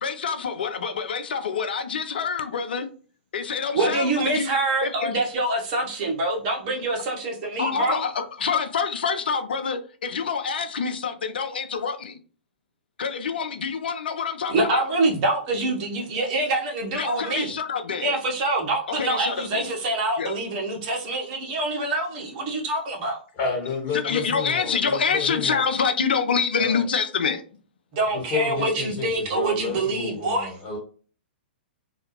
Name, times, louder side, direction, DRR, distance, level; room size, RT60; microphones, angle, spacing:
voice 1, 0.0-2.9 3.3-4.5 4.8-5.2 7.6-12.2 13.0-14.9 17.0-18.2 18.9-19.7 20.2-20.3 23.9-27.4, left 6 dB, 65° left, 0.4 m, -26 dB
voice 2, 3.7-8.0 14.5-17.5 18.0-23.2 27.9-30.5, right 2 dB, 40° right, 0.9 m, -25 dB
voice 3, 23.3-25.6 26.6-26.8 28.1-30.8, left 5 dB, 30° left, 1.3 m, -30 dB
2.4 x 2.2 x 2.9 m
figure-of-eight pair, 110°, 6 cm